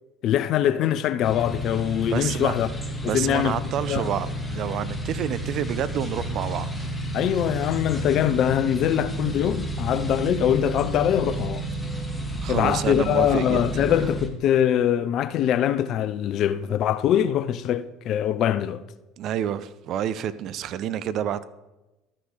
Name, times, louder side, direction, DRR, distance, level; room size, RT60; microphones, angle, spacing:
voice 1, 0.2-2.7 3.1-4.1 7.1-11.6 12.5-18.8, left 10 dB, 50° left, 0.6 m, -23 dB
sound 1, 1.2-14.3, right 1 dB, 10° left, 1.8 m, -31 dB
voice 2, 2.1-2.5 3.0-6.9 12.4-13.8 19.2-21.4, right 10 dB, 50° right, 0.6 m, -29 dB
13.0 x 6.4 x 5.6 m
hypercardioid pair, 65°, 0 cm